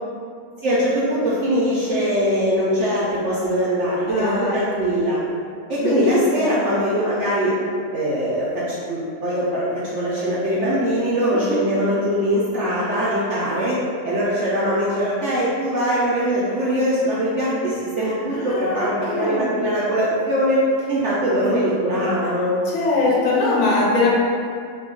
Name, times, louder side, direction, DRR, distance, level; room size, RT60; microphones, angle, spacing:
voice 1, 0.6-5.2 5.7-7.5 7.9-9.7 9.9-13.8 14.0-20.6 20.9-22.5, equal, 65° right, -8 dB, 0.7 m, -22 dB
voice 2, 4.1-4.6 5.8-6.5 11.3-11.6 18.3-19.5 22.7-24.1, left 2 dB, 65° left, -5 dB, 0.8 m, -22 dB
2.7 x 2.3 x 3.6 m, 2.3 s
omnidirectional pair, 1.6 m